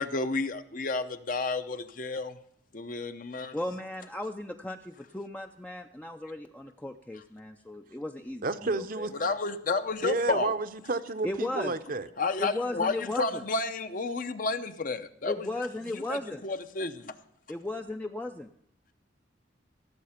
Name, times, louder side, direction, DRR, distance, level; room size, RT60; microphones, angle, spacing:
voice 1, 0.0-2.4 2.7-3.6 9.1-10.5 12.2-15.7 15.9-17.2, left 3 dB, 45° left, 0.8 m, -31 dB
voice 2, 3.5-9.1 11.2-11.7 12.4-13.4 15.3-16.4 17.5-18.5, left 1 dB, 10° left, 0.4 m, -36 dB
voice 3, 8.4-9.1 10.0-12.1, right 3 dB, 50° right, 0.7 m, -31 dB
16.5 x 7.6 x 5.7 m
head